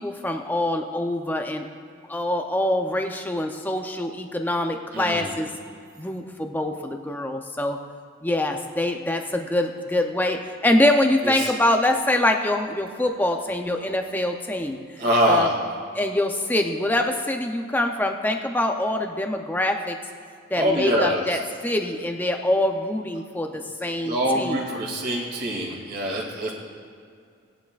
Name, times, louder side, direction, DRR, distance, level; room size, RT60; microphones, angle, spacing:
voice 1, 0.0-1.7 2.1-5.5 6.0-7.8 8.2-14.8 15.3-15.5 16.0-20.0 20.5-24.7, left 1 dB, 10° left, 4 dB, 0.6 m, -24 dB
voice 2, 4.9-5.3 11.2-11.5 15.0-15.5 20.5-21.4 23.8-26.5, equal, 50° right, -4 dB, 2.5 m, -24 dB
19.0 x 10.5 x 2.5 m, 2.3 s
head